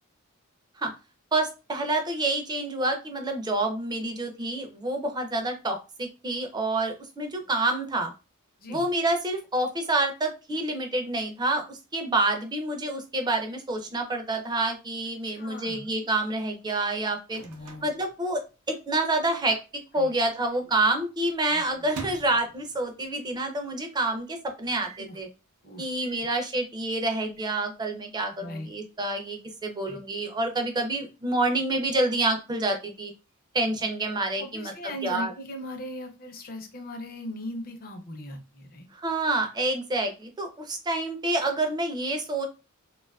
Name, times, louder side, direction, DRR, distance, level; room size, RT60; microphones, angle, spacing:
voice 1, 1.3-8.1 8.7-17.4 17.8-18.4 18.7-19.6 19.9-25.3 25.8-33.1 33.5-34.7 35.0-35.3 38.9-42.5, right 2 dB, 20° right, 5 dB, 0.4 m, -28 dB
voice 2, 15.2-15.9 17.3-17.9 19.9-20.1 21.5-21.9 25.0-25.2 25.6-26.3 28.4-28.7 29.9-30.0 33.7-33.8 34.4-38.9, left 1 dB, 40° left, 4 dB, 0.6 m, -39 dB
Microwave oven, 16.8-18.9 19.2-19.3 19.5-20.0 20.5-23.2 23.7-23.8 23.9-24.0 24.7-25.1 26.0-26.4 27.1-27.7, right 4 dB, 85° right, 0.5 m, -45 dB
2.5 x 2.3 x 2.3 m, 0.30 s
head